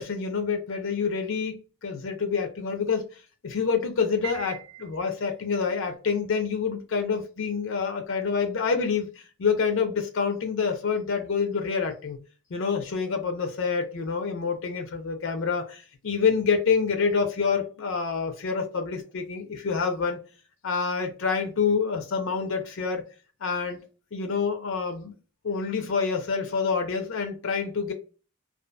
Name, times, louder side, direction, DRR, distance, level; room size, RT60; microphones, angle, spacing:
voice 1, 0.0-3.0 3.4-12.2 12.5-20.2 20.6-23.0 23.4-23.8 24.1-25.1 25.4-27.9, left 5 dB, 65° left, 0.5 m, -27 dB
Piano, 4.2-5.5, right 9 dB, 80° right, 0.5 m, -41 dB
2.5 x 2.3 x 2.2 m
head